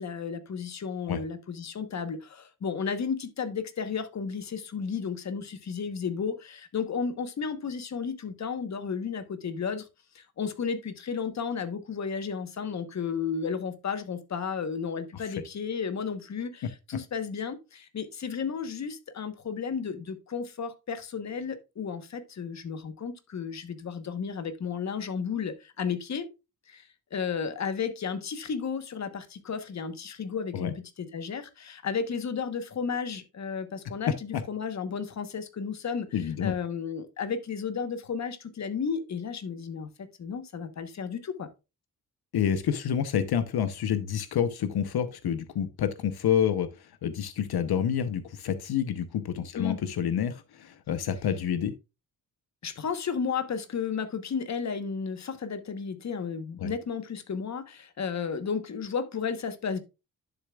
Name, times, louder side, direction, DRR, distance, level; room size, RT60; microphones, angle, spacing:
voice 1, 0.0-9.9 10.1-26.3 26.7-36.1 36.4-41.5 49.5-49.8 52.6-59.8, left 6 dB, 45° left, 1.1 m, -33 dB
voice 2, 36.1-36.5 42.3-51.7 56.6-56.7, left 8 dB, 75° left, 0.8 m, -28 dB
11.0 x 6.8 x 2.3 m
wide cardioid pair, 160°, 38 cm